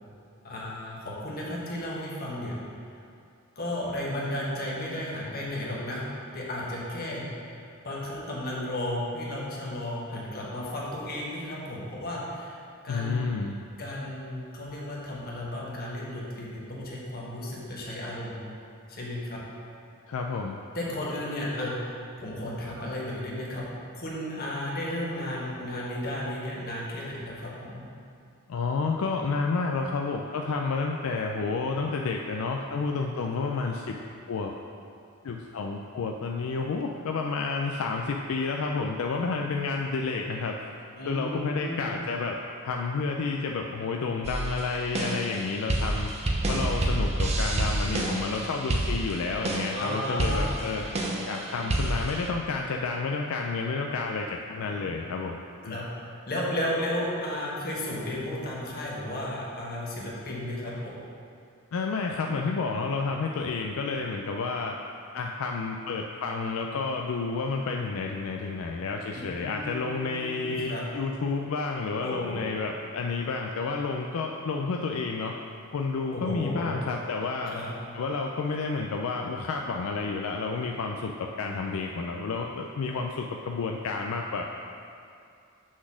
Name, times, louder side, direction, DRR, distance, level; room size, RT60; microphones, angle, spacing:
voice 1, 0.4-2.6 3.6-6.0 6.3-7.3 7.8-12.6 12.8-18.4 18.9-19.4 20.7-21.8 22.2-23.6 23.9-27.8 41.0-42.0 49.7-51.0 55.6-60.9 69.4-70.8 72.0-72.4 76.1-76.8 77.5-77.7, left 1 dB, 45° left, -5 dB, 1.3 m, -34 dB
voice 2, 12.9-13.6 20.1-20.6 28.5-34.0 34.3-34.5 35.2-40.6 41.1-42.4 42.6-46.1 46.5-50.9 51.3-55.8 61.7-64.8 65.1-75.3 75.7-77.6 77.9-84.4, left 4 dB, 70° left, 1 dB, 0.4 m, -30 dB
sound 1, 44.2-52.3, right 1 dB, 30° right, 0.6 m, -29 dB
6.2 x 4.0 x 6.1 m, 2.5 s
head